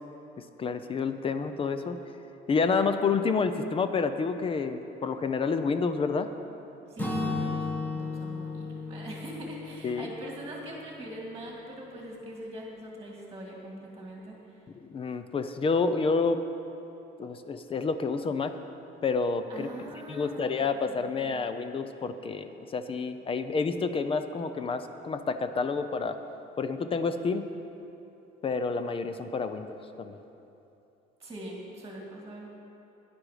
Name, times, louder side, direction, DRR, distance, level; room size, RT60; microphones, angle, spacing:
voice 1, 0.6-2.0 2.5-6.3 9.8-10.1 14.8-16.4 17.2-18.6 19.0-19.7 20.1-26.2 26.6-27.5 28.4-29.7 30.0-30.2, left 4 dB, 30° left, 10 dB, 0.5 m, -29 dB
voice 2, 6.8-14.7 19.5-21.4 31.2-32.5, right 1 dB, 15° right, -2 dB, 1.9 m, -42 dB
Acoustic guitar / Strum, 7.0-10.9, left 3 dB, 10° left, 1.4 m, -34 dB
11.0 x 10.0 x 4.9 m, 2.9 s
cardioid pair, 130°, 19 cm